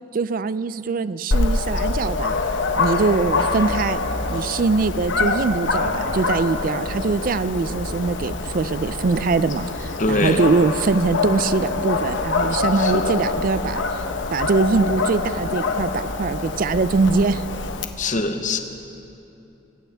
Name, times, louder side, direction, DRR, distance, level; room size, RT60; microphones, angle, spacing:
voice 1, 0.1-2.4 2.8-4.0 4.3-14.0 14.3-17.5, right 4 dB, 50° right, 15 dB, 0.4 m, -22 dB
Dog, 1.3-17.8, left 3 dB, 90° left, 0.9 m, -25 dB
voice 2, 10.0-10.5 12.8-13.2 18.0-18.6, left 2 dB, 45° left, 6 dB, 0.9 m, -23 dB
24.5 x 14.5 x 3.5 m, 2.9 s
head